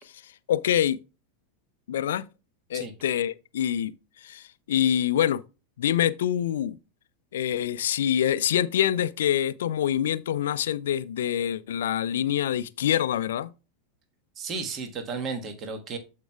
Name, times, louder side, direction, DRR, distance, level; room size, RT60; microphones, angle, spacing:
voice 1, 0.5-1.0 1.9-2.2 2.7-3.9 4.2-5.4 5.8-6.8 7.3-13.5, left 10 dB, 65° left, 0.5 m, -25 dB
voice 2, 14.4-16.0, right 4 dB, 30° right, 1.5 m, -33 dB
14.0 x 4.7 x 2.3 m
figure-of-eight pair, 85°, 0 cm